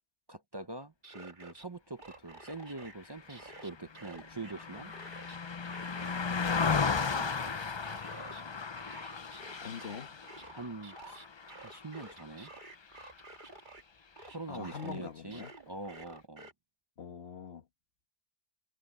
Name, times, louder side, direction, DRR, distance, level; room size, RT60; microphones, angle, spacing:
voice 1, 0.3-4.9 6.6-7.3 10.5-11.2 11.6-12.5 14.3-16.5, right 2 dB, 25° right, 0.7 m, -44 dB
sound 1, 0.8-1.6 2.0-2.9 3.3-5.4 5.6-8.4 8.8-13.8 14.2-16.5, right 3 dB, 50° right, 2.2 m, -51 dB
Car passing by, 3.1-12.6 13.0-13.2, left 5 dB, 35° left, 0.5 m, -35 dB
voice 2, 9.6-10.2 14.5-15.5 17.0-17.6, left 7 dB, 75° left, 1.5 m, -44 dB
omnidirectional pair, 1.1 m